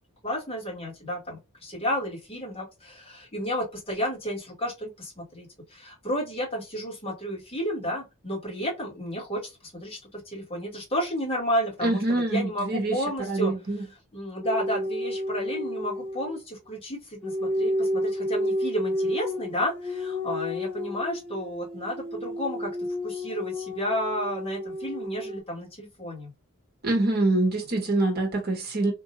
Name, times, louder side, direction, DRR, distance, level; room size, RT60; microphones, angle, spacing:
voice 1, 0.2-13.5 14.1-22.7 23.0-26.3, equal, 25° left, 1.8 m, -32 dB
voice 2, 11.8-13.8 26.8-28.9, right 2 dB, 45° right, 1.1 m, -25 dB
sound 1, 14.4-16.4 17.2-25.4, left 1 dB, 5° left, 1.2 m, -31 dB
3.8 x 2.7 x 2.7 m
head